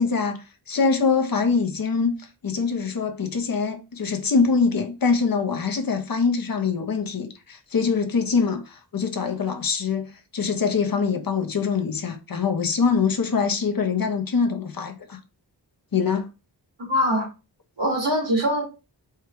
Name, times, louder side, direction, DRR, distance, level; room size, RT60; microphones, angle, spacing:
voice 1, 0.0-15.2 15.9-16.3, left 5 dB, 55° left, 0.9 m, -24 dB
voice 2, 16.8-17.3 17.8-18.7, equal, 80° right, 2.5 m, -22 dB
4.7 x 2.4 x 4.6 m
wide cardioid pair, 100°, 42 cm